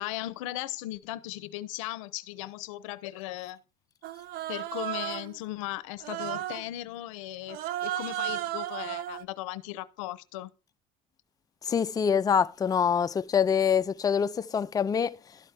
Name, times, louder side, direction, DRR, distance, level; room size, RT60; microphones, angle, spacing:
voice 1, 0.0-3.6 4.5-10.5, left 16 dB, 90° left, 0.6 m, -37 dB
Human voice, 4.0-5.4 6.0-6.7 7.5-9.2, right 13 dB, 70° right, 0.6 m, -34 dB
voice 2, 11.7-15.2, left 7 dB, 25° left, 0.4 m, -25 dB
12.0 x 4.2 x 4.8 m
supercardioid pair, 90°, 16 cm